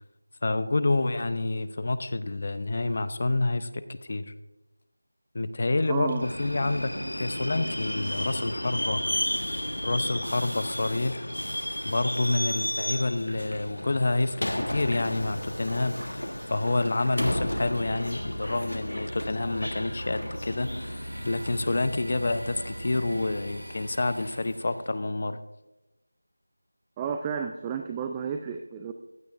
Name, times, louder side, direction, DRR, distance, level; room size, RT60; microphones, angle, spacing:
voice 1, 0.4-4.2 5.3-9.0 9.8-11.3 11.8-25.4, left 2 dB, 40° left, 13 dB, 0.6 m, -28 dB
sound 1, 5.8-20.8, right 1 dB, 45° right, 4.2 m, -50 dB
voice 2, 5.9-6.3 27.0-28.9, right 7 dB, 10° right, 5 dB, 0.4 m, -32 dB
Subway metro underground, 6.2-24.7, equal, 80° left, 1.2 m, -34 dB
Domestic sounds home sounds, 20.6-25.0, right 1 dB, 80° right, 1.9 m, -46 dB
15.0 x 10.5 x 2.5 m, 1.0 s
figure-of-eight pair, 170°, 0 cm